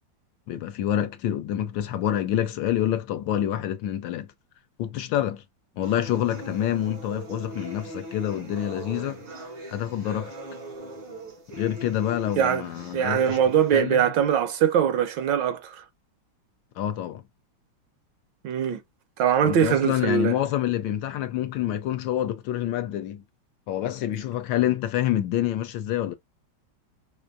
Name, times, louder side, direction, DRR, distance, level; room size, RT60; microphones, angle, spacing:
voice 1, 0.5-4.3 4.8-5.4 5.8-9.2 9.7-10.4 11.6-13.4 13.7-14.1 16.8-17.2 19.4-23.2 23.7-26.2, left 11 dB, 75° left, 1.2 m, -27 dB
sound 1, 5.8-13.8, right 1 dB, 90° right, 3.0 m, -40 dB
voice 2, 12.9-15.8 18.4-18.8 19.2-20.3, right 8 dB, 75° right, 1.2 m, -22 dB
5.0 x 2.4 x 2.5 m
omnidirectional pair, 2.2 m